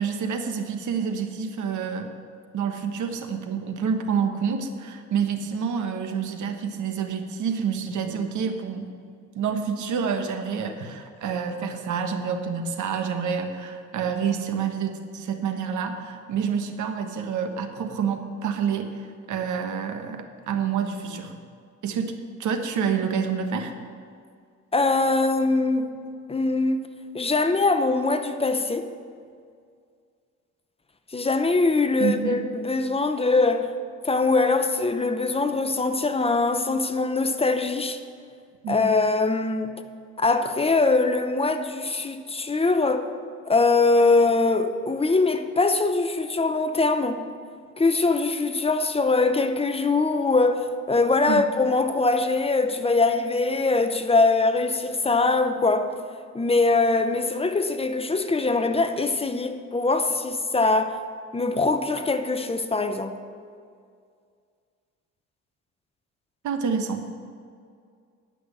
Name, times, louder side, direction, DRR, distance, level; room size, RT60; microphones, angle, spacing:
voice 1, 0.0-2.1 2.5-8.9 9.3-21.3 21.8-23.7 32.0-32.4 38.6-38.9 51.3-51.4 66.4-67.1, right 6 dB, 75° right, 1.2 m, -28 dB
voice 2, 24.7-26.0 26.3-26.9 27.1-28.9 31.1-33.7 34.0-38.0 38.7-39.7 40.2-43.1 43.5-47.3 47.8-55.9 56.3-61.0 61.3-63.2, left 3 dB, 20° left, 0.8 m, -22 dB
10.0 x 5.9 x 8.3 m
cardioid pair, 90°, 30 cm